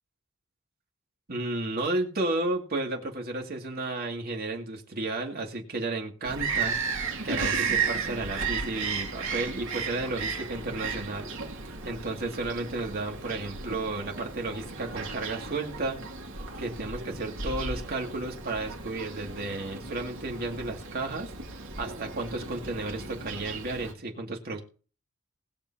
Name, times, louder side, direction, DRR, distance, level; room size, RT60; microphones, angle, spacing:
voice 1, 1.3-11.3 11.8-16.0 16.6-24.6, right 2 dB, 45° right, 2 dB, 2.5 m, -33 dB
Bird vocalization bird call bird song, 6.2-23.9, right 5 dB, 65° right, 2.4 m, -34 dB
20.5 x 6.9 x 2.9 m, 0.38 s
head